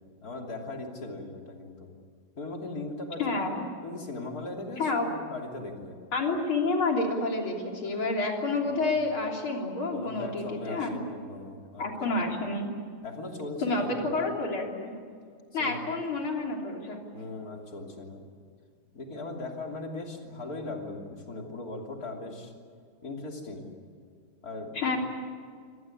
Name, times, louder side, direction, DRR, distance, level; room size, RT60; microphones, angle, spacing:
voice 1, 0.2-1.9 2.4-3.5 3.8-6.0 8.5-9.0 9.9-11.9 13.0-14.2 15.6-15.9 17.1-18.2 18.9-22.5 23.0-23.7 24.4-25.0, left 2 dB, 45° left, 1 dB, 3.5 m, -39 dB
voice 2, 3.2-3.7 4.8-5.1 6.1-11.0 11.8-12.7 13.6-14.9 15.5-17.0 24.8-25.0, left 3 dB, 80° left, 1 dB, 4.3 m, -29 dB
26.0 x 18.5 x 9.9 m, 2.1 s
omnidirectional pair, 2.3 m